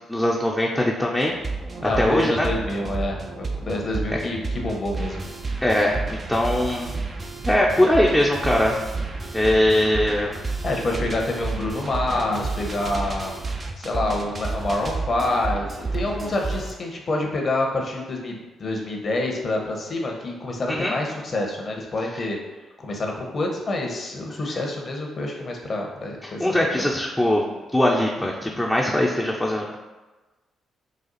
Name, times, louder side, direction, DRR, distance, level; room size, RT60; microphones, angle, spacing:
voice 1, 0.1-1.3 1.8-2.5 5.6-7.0 7.4-8.8 9.3-10.4 20.7-20.9 26.2-27.4 27.7-29.8, left 1 dB, 5° left, -3 dB, 0.7 m, -21 dB
sound 1, 1.2-16.7, right 3 dB, 40° right, 0.6 m, -31 dB
voice 2, 1.8-5.2 10.6-13.3 13.8-15.7 15.9-22.4 22.8-26.9, left 2 dB, 50° left, 0 dB, 1.0 m, -27 dB
4.2 x 2.4 x 4.0 m, 1.2 s
hypercardioid pair, 45°, 0 cm